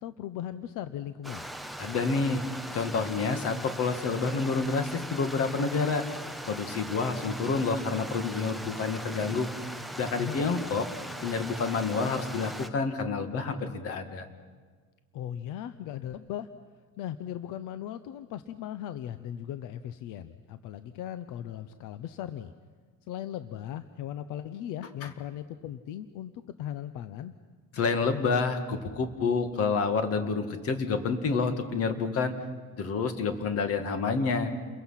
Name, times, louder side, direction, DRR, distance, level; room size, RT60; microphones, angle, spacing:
voice 1, 0.0-1.5 10.2-10.5 15.1-16.5 17.0-22.5 23.1-26.3 26.6-27.3, left 11 dB, 75° left, 11 dB, 0.8 m, -38 dB
Stream, 1.2-12.7, right 1 dB, ahead, 0.6 m, -40 dB
voice 2, 1.8-2.4 2.7-6.0 6.5-9.5 10.0-10.9 11.2-14.3 25.0-25.1 27.7-32.3 32.8-34.5, left 4 dB, 45° left, 7 dB, 2.0 m, -28 dB
29.5 x 22.5 x 5.8 m, 1.5 s
cardioid pair, 170°, 33 cm